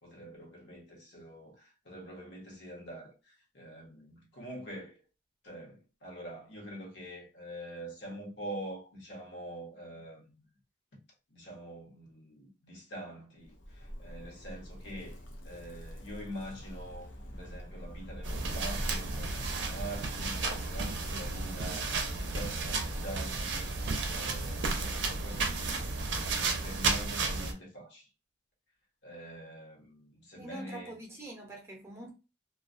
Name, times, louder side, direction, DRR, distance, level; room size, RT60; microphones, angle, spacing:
voice 1, 0.0-5.0 5.4-10.4 11.3-23.7 24.1-25.9 26.4-28.1 29.0-30.9, right 1 dB, 65° left, 1.0 m, -45 dB
Zipper (clothing), 13.4-20.1, equal, 80° left, 0.6 m, -44 dB
sound 1, 18.2-27.5, right 3 dB, 65° right, 0.5 m, -33 dB
voice 2, 30.4-32.1, right 2 dB, 15° right, 0.6 m, -45 dB
2.3 x 2.1 x 2.5 m
head